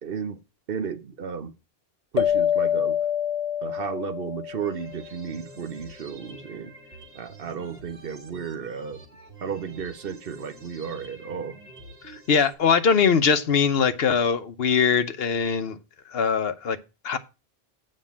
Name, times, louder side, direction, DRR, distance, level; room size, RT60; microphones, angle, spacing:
voice 1, 0.0-0.4 0.7-1.5 2.1-3.0 3.6-6.7 7.1-9.0 9.4-11.6, right 7 dB, 65° right, 1.0 m, -33 dB
sound 1, 2.2-5.1, left 9 dB, 45° left, 0.5 m, -26 dB
sound 2, 4.5-12.5, right 2 dB, 80° right, 2.0 m, -47 dB
voice 2, 12.0-15.8 16.1-16.8 17.0-17.2, left 6 dB, 70° left, 1.0 m, -22 dB
7.7 x 5.4 x 7.3 m
omnidirectional pair, 1.0 m